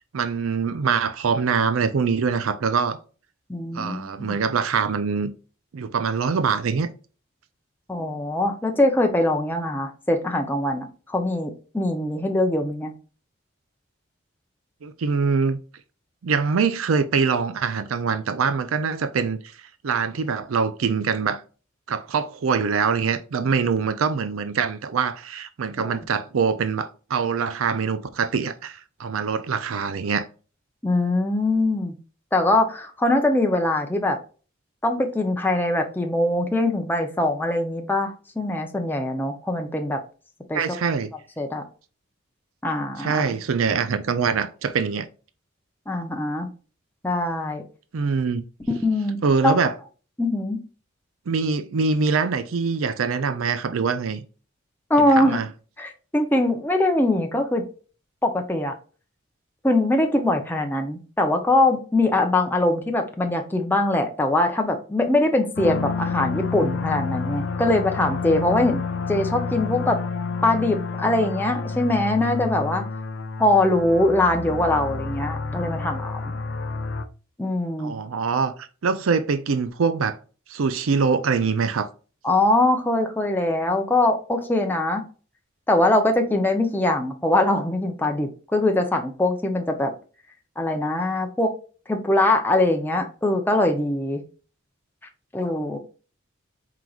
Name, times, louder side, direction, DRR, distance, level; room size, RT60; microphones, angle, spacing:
voice 1, 0.1-3.0 3.7-5.3 5.7-6.9 14.8-15.6 16.2-19.4 19.8-21.4 21.9-30.3 40.5-41.1 43.0-45.1 47.9-48.4 49.2-49.7 51.3-54.2 55.0-55.5 77.8-80.2 80.5-81.9, right 5 dB, 80° right, 0.5 m, -24 dB
voice 2, 3.5-4.4 7.9-12.9 25.8-26.0 30.8-31.9 32.3-34.2 34.8-40.0 40.5-40.6 41.4-41.6 42.6-43.2 45.9-46.5 47.0-47.6 48.7-49.6 50.2-50.6 54.9-55.4 55.8-57.6 58.2-58.7 59.6-68.8 69.1-70.0 70.4-72.8 73.4-76.2 77.4-77.9 82.2-85.0 85.7-89.9 90.6-91.5 91.9-94.2 95.3-95.8, left 2 dB, 10° left, 0.6 m, -22 dB
sound 1, 65.5-77.1, left 4 dB, 60° left, 0.5 m, -29 dB
4.5 x 3.9 x 2.4 m
head